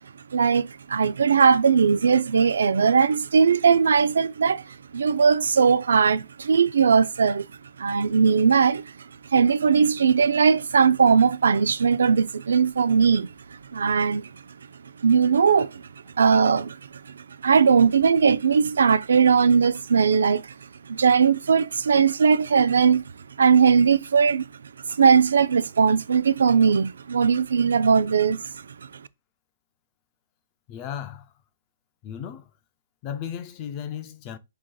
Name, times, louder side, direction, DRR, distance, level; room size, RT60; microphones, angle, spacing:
voice 1, 0.3-7.5 7.8-8.9 9.3-13.3 13.7-14.3 15.0-15.8 16.2-16.8 17.4-20.5 20.9-23.0 23.4-24.5 24.9-28.5, right 6 dB, 80° right, 0.3 m, -19 dB
voice 2, 30.7-31.3 32.0-32.5 33.0-34.4, left 9 dB, 20° left, 0.3 m, -35 dB
7.5 x 2.8 x 2.2 m
hypercardioid pair, 170°, 0 cm